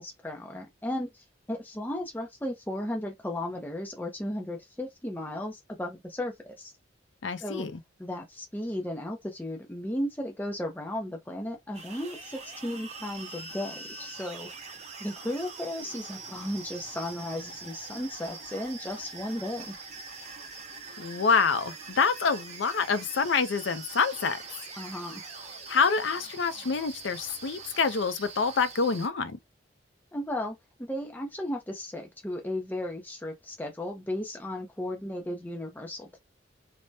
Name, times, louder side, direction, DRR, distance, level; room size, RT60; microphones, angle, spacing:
voice 1, 0.0-6.7 7.4-7.7 8.0-14.5 15.0-19.8 24.8-25.2 30.1-36.2, left 1 dB, 10° left, 0.5 m, -35 dB
voice 2, 7.2-7.8 21.0-24.4 25.7-29.4, left 5 dB, 80° left, 0.5 m, -26 dB
sound 1, 11.7-29.1, right 4 dB, 35° right, 0.7 m, -43 dB
3.3 x 2.1 x 2.6 m
head